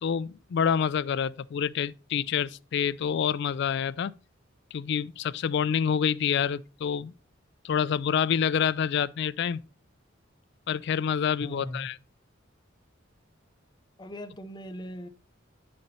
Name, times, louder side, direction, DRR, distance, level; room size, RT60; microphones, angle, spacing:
voice 1, 0.0-4.1 4.7-7.1 7.6-9.6 10.7-11.9, left 7 dB, 60° left, 0.3 m, -27 dB
voice 2, 11.4-11.9 14.0-15.1, left 1 dB, 20° left, 0.6 m, -38 dB
10.0 x 4.3 x 4.0 m
head